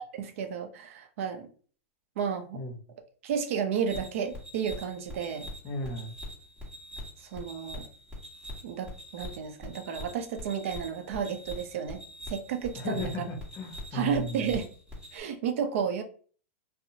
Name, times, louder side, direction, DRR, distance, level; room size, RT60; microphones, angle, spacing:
voice 1, 0.1-1.5 2.2-2.6 3.2-5.5 7.2-7.9 8.6-12.0 12.3-13.0 13.9-14.7 15.1-16.0, right 7 dB, 65° right, 5 dB, 0.5 m, -32 dB
sound 1, 3.9-15.2, left 1 dB, 10° right, 1.2 m, -43 dB
voice 2, 5.6-6.1 12.8-14.6, left 1 dB, 35° left, 2 dB, 0.8 m, -35 dB
2.7 x 2.0 x 2.7 m, 0.42 s
hypercardioid pair, 130°, 8 cm